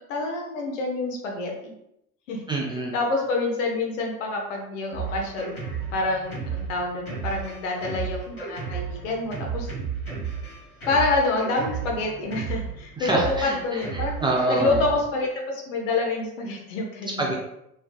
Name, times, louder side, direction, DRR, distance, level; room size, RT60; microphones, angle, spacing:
voice 1, 0.1-1.7 2.3-2.4 2.9-5.6 5.9-9.7 10.9-14.1 14.5-17.4, left 3 dB, 60° left, 1 dB, 0.9 m, -27 dB
voice 2, 2.5-2.9 13.0-14.8 17.2-17.3, right 2 dB, 10° right, -2 dB, 0.5 m, -26 dB
Drum kit, 4.9-15.0, right 6 dB, 85° left, 1.3 m, -33 dB
3.2 x 3.1 x 2.3 m, 0.80 s
figure-of-eight pair, 65°, 42 cm